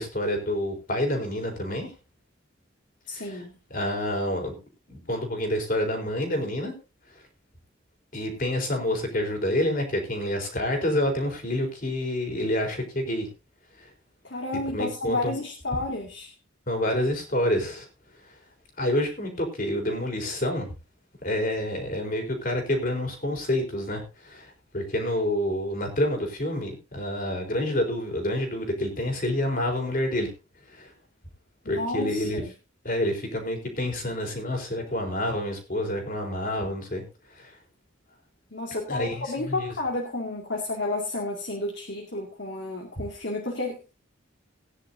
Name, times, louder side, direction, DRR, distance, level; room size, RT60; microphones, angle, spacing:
voice 1, 0.0-1.9 3.1-3.4 3.7-4.6 4.9-6.7 7.1-7.2 8.1-13.3 13.8-13.9 14.7-15.3 16.7-17.9 18.2-18.3 18.8-20.7 21.2-30.3 30.7-30.9 31.7-32.4 32.8-37.0 37.3-37.6 38.9-39.7, left 1 dB, 45° left, 3 dB, 4.1 m, -28 dB
voice 2, 3.1-3.5 14.2-16.3 31.6-32.5 38.5-44.0, left 2 dB, 65° left, 1 dB, 2.3 m, -31 dB
19.0 x 10.0 x 2.8 m, 0.30 s
head